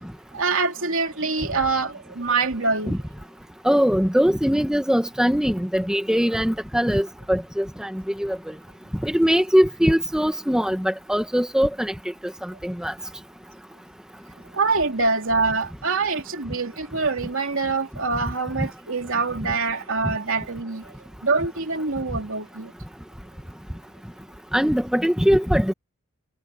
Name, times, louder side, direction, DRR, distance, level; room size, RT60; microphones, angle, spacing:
voice 1, 0.3-3.0 14.5-20.9 21.2-22.7, right 4 dB, 65° right, 3.2 m, -25 dB
voice 2, 3.6-8.4 9.0-11.9 12.4-12.9 24.5-25.7, equal, 5° right, 1.2 m, -21 dB
head